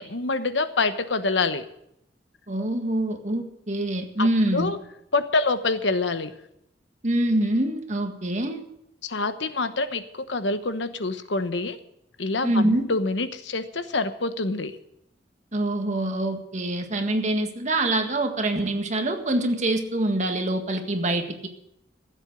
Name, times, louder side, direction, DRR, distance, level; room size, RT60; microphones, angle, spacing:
voice 1, 0.0-1.6 4.2-4.3 4.5-4.8 5.1-6.3 9.0-11.8 12.2-14.8, left 3 dB, 80° left, 10 dB, 1.1 m, -26 dB
voice 2, 2.5-4.7 7.0-8.6 12.4-12.9 15.5-21.5, right 1 dB, 40° right, 5 dB, 1.8 m, -25 dB
15.5 x 8.1 x 8.1 m, 0.78 s
head